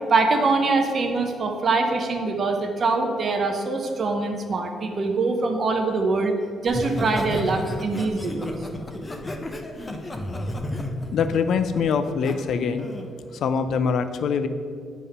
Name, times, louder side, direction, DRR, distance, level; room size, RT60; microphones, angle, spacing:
voice 1, 0.1-6.3 6.6-8.6, right 3 dB, 45° right, 3 dB, 0.7 m, -23 dB
Laughter, 6.7-12.3 12.8-13.1, left 1 dB, 25° left, 0.7 m, -32 dB
voice 2, 11.1-12.9 13.4-14.5, left 6 dB, 70° left, 10 dB, 0.4 m, -23 dB
8.5 x 3.6 x 5.5 m, 2.2 s
cardioid pair, 90°, 0 cm